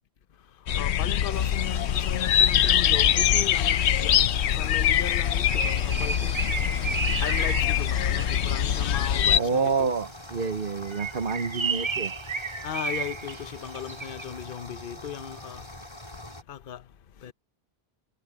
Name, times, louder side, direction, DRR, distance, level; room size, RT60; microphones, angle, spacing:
voice 1, 0.5-6.9 7.2-9.9 12.6-15.7 16.5-16.9 17.2-17.3, left 9 dB, 60° left, 0.9 m, -37 dB
sound 1, 0.7-9.4, left 10 dB, 85° left, 0.9 m, -23 dB
sound 2, 1.3-16.4, left 1 dB, 25° left, 4.4 m, -43 dB
Bird, 5.1-9.2 10.8-14.3, right 4 dB, 30° right, 1.0 m, -33 dB
voice 2, 9.3-12.1, right 5 dB, 55° right, 1.1 m, -28 dB
omnidirectional pair, 1.1 m